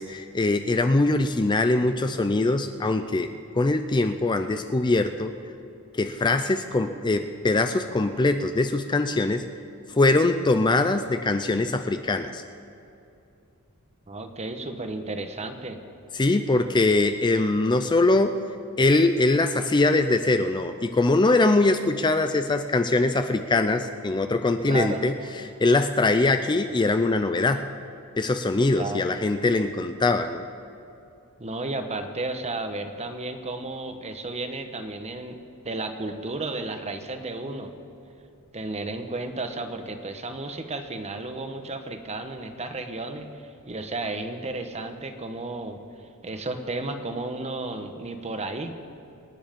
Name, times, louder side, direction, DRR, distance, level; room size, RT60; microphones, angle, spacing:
voice 1, 0.0-5.4 5.9-9.4 10.0-12.4 16.1-18.4 18.8-25.1 25.6-27.6 28.2-30.4, left 2 dB, 20° left, 8 dB, 0.5 m, -22 dB
voice 2, 14.1-15.8 24.6-25.0 28.7-29.2 31.4-37.7 38.5-45.8 46.2-48.8, right 2 dB, 30° right, 7 dB, 1.1 m, -33 dB
25.5 x 9.9 x 5.3 m, 2.7 s
head